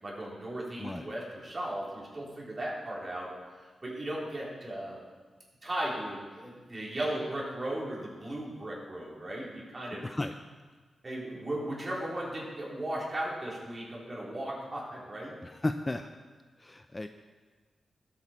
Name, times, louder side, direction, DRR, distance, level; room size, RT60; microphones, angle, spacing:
voice 1, 0.0-3.3 3.8-5.0 5.6-10.1 11.0-15.3, right 1 dB, 25° right, -5 dB, 3.7 m, -36 dB
voice 2, 10.0-10.3 15.4-16.1 16.6-17.1, left 2 dB, 15° left, 7 dB, 0.4 m, -34 dB
20.5 x 8.1 x 4.4 m, 1.4 s
wide cardioid pair, 145°, 0 cm